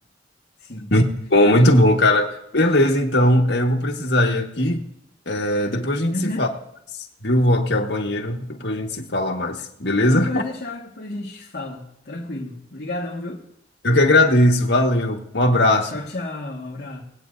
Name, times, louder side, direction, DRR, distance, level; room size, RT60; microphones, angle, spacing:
voice 1, 0.6-0.9 6.1-6.5 10.0-13.4 15.9-17.0, left 1 dB, 60° left, 1.8 m, -31 dB
voice 2, 1.3-4.8 5.3-6.1 6.4-6.5 7.2-10.4 13.8-15.9, left 1 dB, 80° left, 1.6 m, -19 dB
20.5 x 8.5 x 2.6 m
head